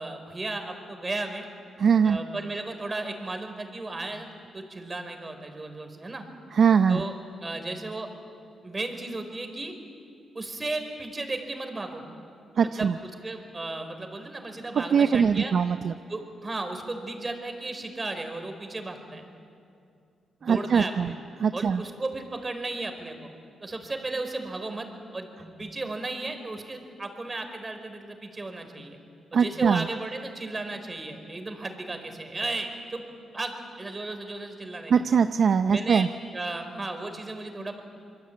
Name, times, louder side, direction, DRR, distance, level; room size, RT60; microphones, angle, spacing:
voice 1, 0.0-1.4 2.0-4.3 4.5-6.2 6.9-7.1 7.4-8.1 8.6-9.7 10.3-12.0 12.6-12.9 13.2-15.5 16.1-19.2 20.4-21.2 21.5-23.3 23.6-24.9 25.1-29.0 29.3-33.0 33.3-34.9 35.7-36.1 36.3-37.8, right 2 dB, 30° right, 6 dB, 4.6 m, -35 dB
voice 2, 1.8-2.2 6.5-7.0 12.6-13.0 14.7-15.9 20.4-21.1 21.4-21.8 29.3-29.9 34.9-36.1, right 6 dB, 60° right, 10 dB, 0.6 m, -22 dB
26.5 x 22.0 x 8.7 m, 2.4 s
supercardioid pair, 60°, 0 cm